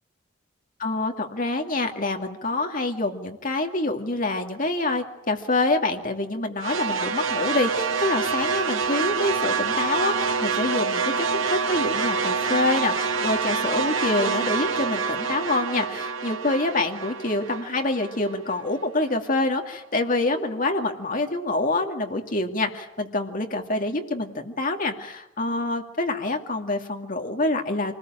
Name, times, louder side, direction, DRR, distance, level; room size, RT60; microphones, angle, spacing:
voice 1, 0.8-28.0, left 2 dB, 40° left, 4 dB, 2.4 m, -26 dB
sound 1, 6.6-18.9, right 5 dB, 80° right, 1.5 m, -27 dB
26.0 x 20.0 x 9.0 m, 0.87 s
head